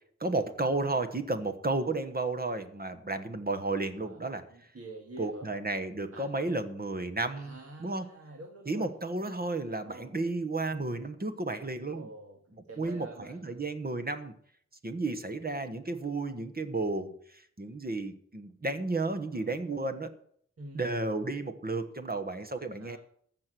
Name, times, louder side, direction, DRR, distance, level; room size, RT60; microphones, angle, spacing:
voice 1, 0.2-4.4 5.2-8.0 8.7-12.1 12.8-14.3 14.8-20.1 20.7-23.0, right 2 dB, 30° right, 9 dB, 1.2 m, -33 dB
voice 2, 4.5-5.5 6.1-6.5 7.4-8.9 9.8-10.1 11.8-12.4 12.7-13.7 19.3-19.5 20.6-21.0 22.8-23.0, right 2 dB, 55° right, 2 dB, 2.0 m, -47 dB
15.0 x 6.1 x 7.7 m, 0.62 s
wide cardioid pair, 110°, 29 cm